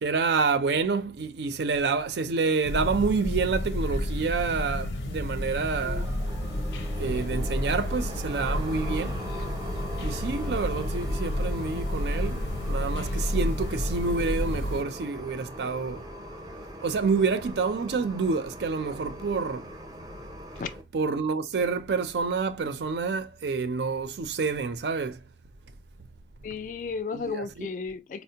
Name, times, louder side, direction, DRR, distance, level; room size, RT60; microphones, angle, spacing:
voice 1, 0.0-6.2 7.0-9.2 10.0-16.1 16.8-19.7 20.9-25.2 27.1-27.7, right 4 dB, 75° right, 0.4 m, -28 dB
sound 1, 2.6-14.8, left 1 dB, 85° left, 0.6 m, -30 dB
sound 2, 5.8-20.8, equal, 20° right, 0.5 m, -40 dB
voice 2, 26.4-28.2, left 5 dB, 45° left, 0.3 m, -33 dB
4.2 x 2.0 x 2.8 m
head